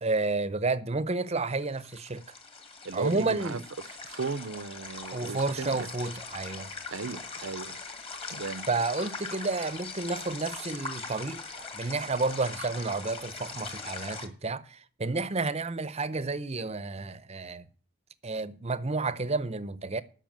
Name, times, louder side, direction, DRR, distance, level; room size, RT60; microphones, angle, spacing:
voice 1, 0.0-2.2 2.9-3.6 5.1-6.7 8.7-17.6 18.2-20.0, right 3 dB, 30° right, 0.7 m, -31 dB
sound 1, 1.5-14.3, left 4 dB, 25° left, 1.5 m, -41 dB
voice 2, 2.8-3.6 4.0-5.9 6.9-7.8 8.3-8.7, right 4 dB, 65° right, 0.6 m, -36 dB
12.5 x 5.7 x 9.0 m
head